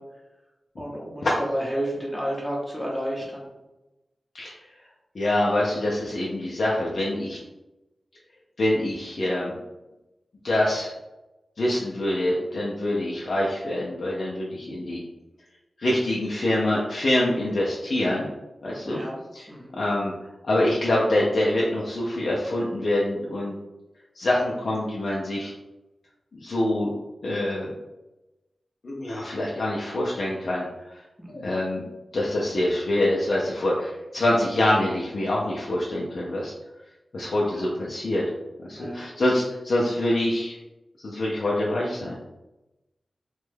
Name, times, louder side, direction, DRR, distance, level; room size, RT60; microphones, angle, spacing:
voice 1, 0.8-1.3 1.5-3.5 18.9-19.2 19.5-19.7 31.2-31.5 37.5-37.7 38.7-39.1, equal, ahead, -4 dB, 0.8 m, -31 dB
voice 2, 5.1-7.4 8.6-9.5 10.4-10.9 11.6-15.0 15.8-18.3 18.6-19.0 19.3-19.5 19.7-20.1 20.4-23.6 24.1-25.5 26.3-26.9 27.2-27.8 28.8-31.0 31.3-31.9 32.1-36.5 37.1-38.2 38.6-40.6 41.0-42.2, left 1 dB, 70° left, -5 dB, 0.5 m, -25 dB
3.1 x 2.2 x 3.2 m, 1.0 s
wide cardioid pair, 75°, 0 cm